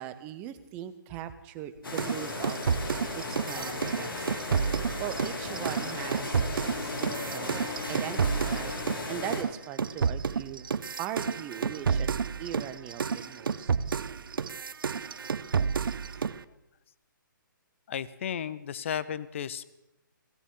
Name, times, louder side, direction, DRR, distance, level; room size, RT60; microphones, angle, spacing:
voice 1, 0.0-2.6 3.2-4.3 5.0-8.7 9.1-10.7 11.0-13.7, right 11 dB, 15° right, 10 dB, 0.5 m, -40 dB
sound 1, 1.8-9.4, left 3 dB, 80° left, 2.5 m, -36 dB
sound 2, 2.0-9.1 9.3-16.4, right 6 dB, 80° right, 0.6 m, -30 dB
voice 2, 17.9-19.6, left 8 dB, 35° left, 18 dB, 0.5 m, -34 dB
17.0 x 15.5 x 3.7 m, 0.95 s
hypercardioid pair, 165°, 11 cm